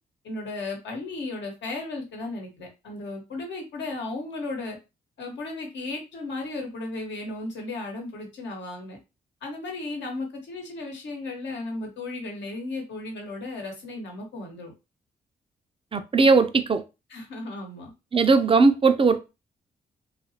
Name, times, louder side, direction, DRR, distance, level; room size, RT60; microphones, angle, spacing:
voice 1, 0.2-4.8 5.2-9.0 9.4-14.7 17.1-17.9, left 2 dB, 70° left, 1.1 m, -35 dB
voice 2, 15.9-16.8 18.1-19.2, right 4 dB, 30° right, 0.5 m, -19 dB
2.7 x 2.4 x 2.8 m
hypercardioid pair, 45°, 19 cm